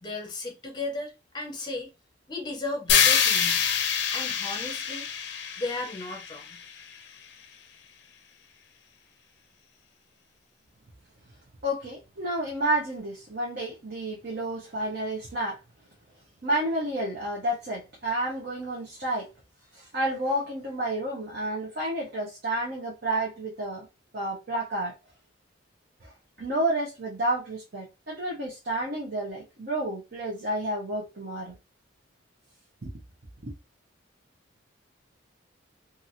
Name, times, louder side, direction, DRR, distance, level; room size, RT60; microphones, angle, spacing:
voice 1, 0.0-1.9 2.3-3.7 4.1-5.1 5.6-6.5, left 2 dB, 20° left, 0.8 m, -35 dB
sound 1, 2.9-7.0, left 8 dB, 60° left, 0.5 m, -25 dB
voice 2, 11.6-15.6 16.4-19.3 19.7-23.9 24.1-24.9 26.0-26.1 26.4-31.5 32.8-32.9 33.4-33.5, right 1 dB, 55° right, 0.9 m, -30 dB
2.8 x 2.7 x 2.7 m
head